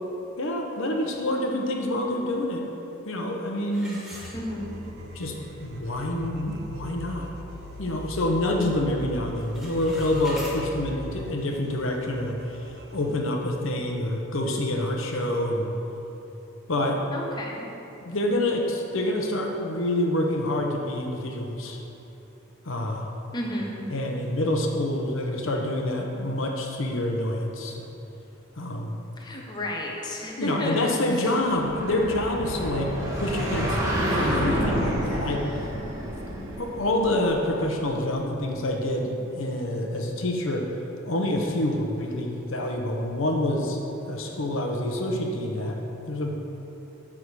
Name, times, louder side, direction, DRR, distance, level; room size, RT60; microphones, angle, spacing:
voice 1, 0.4-2.7 3.0-4.0 5.1-5.4 5.6-7.5 7.8-15.7 16.7-17.0 18.0-21.8 22.6-23.1 23.9-27.8 28.6-29.0 30.4-33.8 34.1-35.7 36.6-40.7 41.0-43.8 44.1-45.8 46.1-46.3, left 1 dB, 70° left, 1 dB, 0.9 m, -27 dB
sound 1, 3.7-5.0 5.4-5.5 6.1-6.2 6.6-6.9 7.3-8.4 8.7-9.0 9.3-10.6, equal, ahead, 1.5 m, -42 dB
sound 2, 4.1-13.2, right 1 dB, 50° right, 0.9 m, -41 dB
voice 2, 4.3-4.8 17.1-17.7 23.3-23.8 29.2-30.8 31.1-31.3, left 1 dB, 20° left, -2 dB, 0.9 m, -32 dB
sound 3, 31.5-38.1, equal, 15° right, 1.4 m, -29 dB
11.0 x 3.7 x 6.7 m, 3.0 s
head